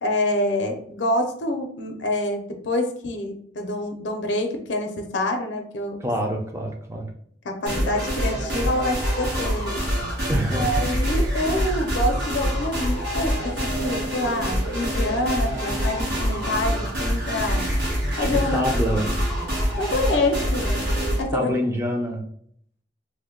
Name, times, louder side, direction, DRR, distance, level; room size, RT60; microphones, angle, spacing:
voice 1, 0.0-6.0 7.4-9.9 10.6-17.7 18.2-18.7 19.8-20.9 21.2-21.5, left 1 dB, 85° left, 4 dB, 0.5 m, -26 dB
voice 2, 6.0-7.1 10.3-10.8 18.2-19.1 21.3-22.2, equal, 15° right, 1 dB, 0.5 m, -26 dB
sound 1, 7.7-21.2, equal, 75° right, 1.2 m, -25 dB
3.1 x 2.1 x 3.6 m, 0.65 s
head